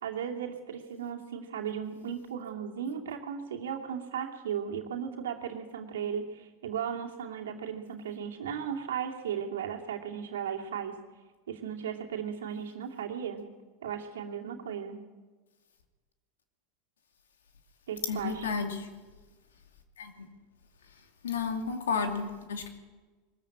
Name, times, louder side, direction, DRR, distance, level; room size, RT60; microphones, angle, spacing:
voice 1, 0.0-11.0 11.5-13.4 13.8-15.0 17.9-18.5, right 8 dB, 80° right, 2 dB, 2.6 m, -36 dB
voice 2, 18.1-18.9 20.0-20.3 21.2-22.7, left 5 dB, 85° left, 5 dB, 2.6 m, -32 dB
21.5 x 14.0 x 8.6 m, 1.3 s
hypercardioid pair, 95°, 0 cm